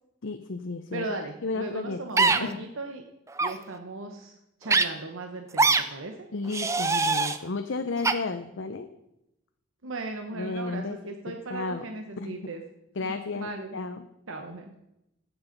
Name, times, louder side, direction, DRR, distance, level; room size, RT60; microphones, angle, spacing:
voice 1, 0.2-2.6 6.3-8.9 10.3-11.8 12.2-12.4 13.0-14.0, left 3 dB, 70° left, 8 dB, 0.7 m, -33 dB
voice 2, 0.9-3.0 3.4-4.3 4.6-6.3 9.8-12.6 13.0-13.8 14.3-14.7, right 2 dB, 85° right, 4 dB, 1.1 m, -37 dB
sound 1, 2.2-2.4 3.3-3.5 4.7-4.8 5.6-5.8 6.5-7.4 8.0-8.1, right 3 dB, 15° right, 0.4 m, -22 dB
13.0 x 8.2 x 5.2 m, 0.85 s
head